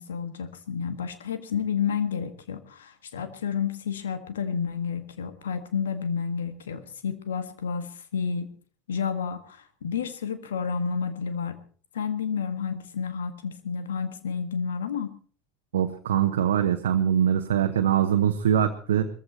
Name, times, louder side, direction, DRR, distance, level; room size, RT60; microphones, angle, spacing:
voice 1, 0.0-8.5 8.9-11.6 11.9-15.1, left 6 dB, 80° left, 10 dB, 1.7 m, -30 dB
voice 2, 15.7-19.1, right 9 dB, 75° right, 5 dB, 1.1 m, -23 dB
21.0 x 14.5 x 4.3 m, 0.43 s
hypercardioid pair, 75°, 0 cm